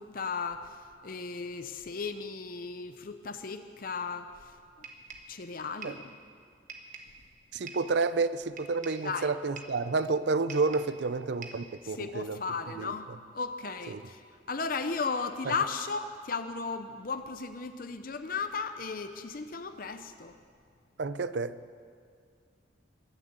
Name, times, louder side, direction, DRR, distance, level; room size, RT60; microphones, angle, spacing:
voice 1, 0.0-4.9 5.3-6.1 9.0-9.3 11.8-13.1 13.3-20.4, left 4 dB, 50° left, 9 dB, 0.6 m, -35 dB
sound 1, 4.8-5.4 5.8-6.1 6.7-7.2 7.7-7.9 8.6-9.1 9.6-9.8 10.5-11.0 11.4-11.7, right 5 dB, 40° right, 1.4 m, -46 dB
voice 2, 7.5-12.4 12.8-12.9 13.9-14.0 15.5-15.6 21.0-21.6, right 4 dB, 65° right, 14 dB, 0.5 m, -30 dB
22.0 x 7.4 x 8.1 m, 2.2 s
head